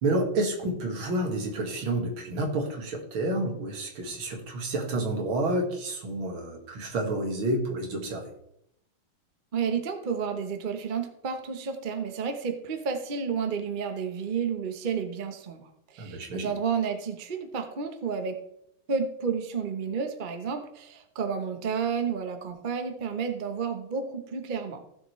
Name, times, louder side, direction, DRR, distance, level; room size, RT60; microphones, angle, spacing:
voice 1, 0.0-8.3 16.0-16.5, right 1 dB, 80° right, 2 dB, 2.6 m, -29 dB
voice 2, 9.5-18.4 18.9-24.8, right 6 dB, 35° right, 6 dB, 0.8 m, -31 dB
15.5 x 6.9 x 3.2 m, 0.75 s
omnidirectional pair, 2.2 m